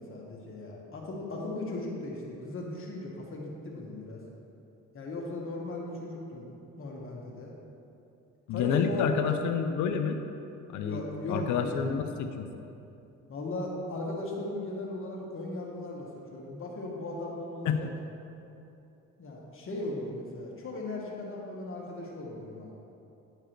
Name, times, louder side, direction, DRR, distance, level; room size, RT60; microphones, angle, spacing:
voice 1, 0.0-4.2 4.9-6.5 6.8-7.5 8.5-9.1 10.8-11.9 13.3-17.9 19.2-22.7, left 2 dB, 45° left, -3 dB, 1.4 m, -37 dB
voice 2, 8.5-10.2 10.7-11.0 11.3-12.5 17.6-17.9, left 6 dB, 75° left, 6 dB, 0.6 m, -28 dB
10.0 x 4.7 x 4.5 m, 2.8 s
cardioid pair, 90°, 30 cm